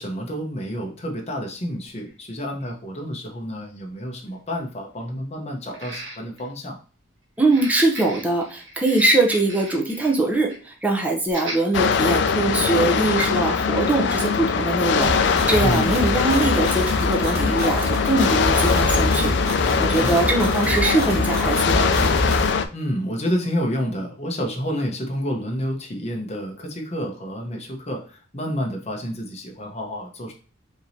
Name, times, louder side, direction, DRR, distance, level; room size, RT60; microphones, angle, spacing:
voice 1, 0.0-6.8 15.6-16.0 19.8-20.1 22.7-30.3, equal, 35° left, 1 dB, 0.9 m, -29 dB
sound 1, 1.0-1.1 2.1-2.2 2.6-2.7 5.7-6.5 7.4-10.2 10.5-10.7 11.3-11.6 12.2-12.3, right 1 dB, 80° right, 1.2 m, -38 dB
voice 2, 7.4-19.4 19.8-21.9, right 2 dB, 10° right, 0 dB, 0.7 m, -22 dB
sound 2, 11.7-22.6, left 6 dB, 60° left, 0.3 m, -22 dB
sound 3, 15.0-22.5, equal, 50° right, 1.2 m, -26 dB
4.7 x 2.9 x 2.7 m, 0.39 s
head